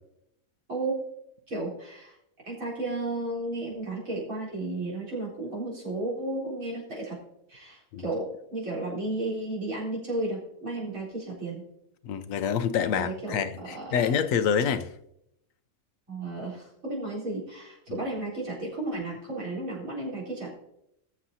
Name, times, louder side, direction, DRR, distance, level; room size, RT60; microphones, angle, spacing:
voice 1, 1.5-2.2 2.5-7.2 7.5-11.7 12.9-14.2 16.1-20.6, right 2 dB, 85° right, -3 dB, 4.5 m, -33 dB
voice 2, 12.0-14.9 17.9-18.0, left 7 dB, 80° left, 11 dB, 1.1 m, -27 dB
19.0 x 7.4 x 2.8 m, 0.78 s
omnidirectional pair, 1.4 m